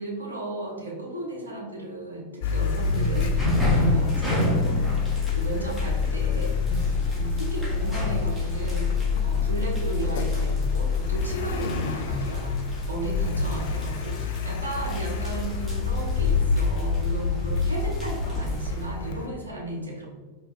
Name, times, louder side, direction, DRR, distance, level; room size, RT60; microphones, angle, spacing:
voice 1, 0.0-4.5 5.3-6.6 7.1-9.0 9.2-20.1, right 1 dB, 75° right, -2 dB, 1.0 m, -34 dB
Car, 2.4-19.3, left 5 dB, 55° left, 0.4 m, -27 dB
sound 1, 2.4-18.9, equal, 5° left, 1.4 m, -31 dB
sound 2, 6.7-7.2 8.3-9.0 9.9-10.8 11.9-12.6 13.4-13.9, equal, 45° right, 1.1 m, -49 dB
4.6 x 3.0 x 3.6 m, 1.3 s
figure-of-eight pair, 90°, 0 cm